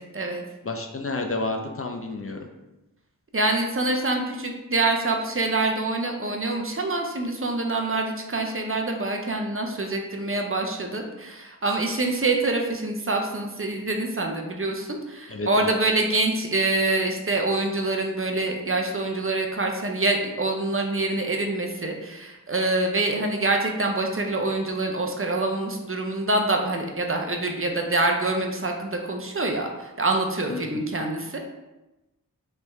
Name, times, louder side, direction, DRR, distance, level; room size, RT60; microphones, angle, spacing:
voice 1, 0.6-2.5 15.3-15.7 30.5-30.8, left 2 dB, 40° left, 3 dB, 0.4 m, -30 dB
voice 2, 3.3-31.4, right 2 dB, 40° right, 2 dB, 0.5 m, -25 dB
3.3 x 3.3 x 3.1 m, 1.0 s
wide cardioid pair, 50°, 35 cm